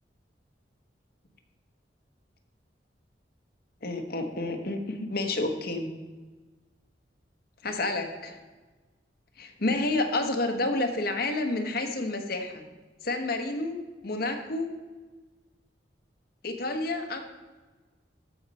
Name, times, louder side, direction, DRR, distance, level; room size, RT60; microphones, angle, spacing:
voice 1, 3.8-5.9 7.6-8.1 9.4-12.6 13.0-13.8 14.0-14.7 16.4-17.2, left 2 dB, 60° left, 5 dB, 1.2 m, -29 dB
13.5 x 5.4 x 4.2 m, 1.3 s
head